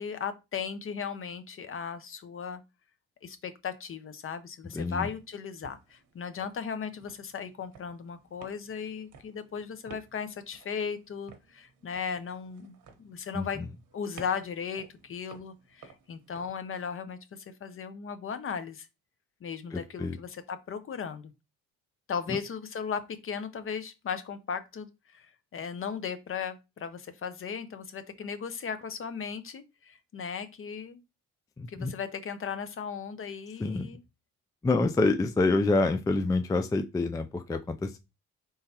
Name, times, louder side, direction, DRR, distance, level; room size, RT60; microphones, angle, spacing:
voice 1, 0.0-2.6 3.2-13.6 13.9-18.9 19.4-21.3 22.1-31.0 31.7-34.0, left 6 dB, 45° left, 0.7 m, -37 dB
voice 2, 4.7-5.1 13.3-13.7 19.7-20.2 22.3-22.4 31.6-31.9 33.6-33.9 34.6-38.0, left 3 dB, 10° left, 0.3 m, -27 dB
sound 1, 4.9-16.5, right 5 dB, 75° right, 1.1 m, -55 dB
4.3 x 3.7 x 2.8 m
cardioid pair, 90°, 30 cm